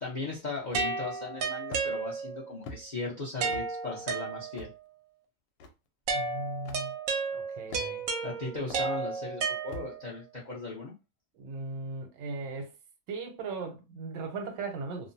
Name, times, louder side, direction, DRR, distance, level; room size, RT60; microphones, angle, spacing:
voice 1, 0.0-4.7 7.7-7.8 8.2-10.9, left 3 dB, 60° left, 0.4 m, -38 dB
sound 1, 0.7-1.1 1.7-1.9 2.6-2.8 3.5-3.7 4.5-4.7 5.6-5.7 6.6-6.8 7.7-8.1 8.7-8.9 9.7-9.9, left 2 dB, 85° left, 1.2 m, -42 dB
sound 2, 0.7-2.5 3.4-4.8 6.1-10.2, right 4 dB, 70° right, 0.9 m, -33 dB
voice 2, 6.1-6.9 7.3-8.0 11.3-12.7 13.1-15.1, right 3 dB, 90° right, 1.4 m, -38 dB
3.0 x 2.1 x 2.6 m
omnidirectional pair, 1.9 m